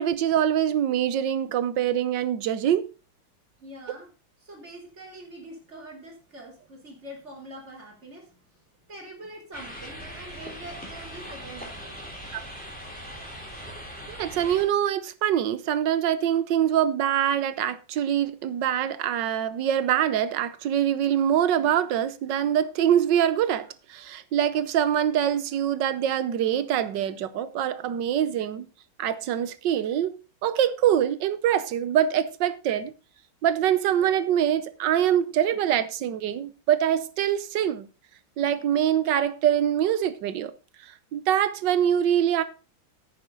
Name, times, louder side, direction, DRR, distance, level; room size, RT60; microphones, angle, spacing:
voice 1, 0.0-2.9 12.3-12.4 14.1-28.7 29.0-32.9 33.4-37.9 38.4-40.5 41.1-42.4, right 10 dB, 70° right, 1.4 m, -24 dB
voice 2, 3.6-4.1 4.4-8.4 8.9-12.0, right 1 dB, 35° right, 3.6 m, -44 dB
sound 1, 9.5-14.6, equal, 5° left, 3.5 m, -40 dB
10.5 x 8.9 x 3.8 m
omnidirectional pair, 2.1 m